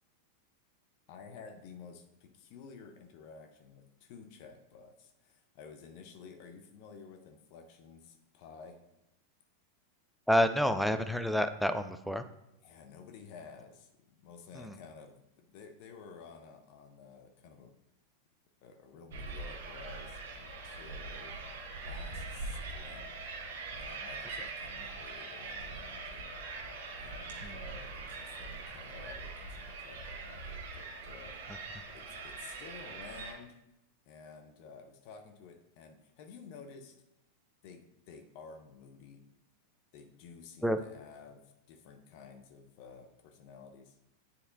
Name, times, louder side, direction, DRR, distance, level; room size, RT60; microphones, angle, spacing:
voice 1, 1.1-8.8 12.6-13.9 14.2-17.8 18.6-21.4 21.8-23.2 23.7-26.4 26.9-31.4 31.9-33.6 34.1-37.0 37.6-39.2 39.9-44.0, left 5 dB, 45° left, 4 dB, 0.7 m, -52 dB
voice 2, 10.3-12.2 14.5-14.8 27.4-27.6 40.6-40.8, equal, ahead, 10 dB, 0.4 m, -29 dB
sound 1, 19.1-33.3, right 3 dB, 55° right, 1.4 m, -42 dB
9.9 x 4.1 x 2.6 m, 0.88 s
figure-of-eight pair, 90°, 0 cm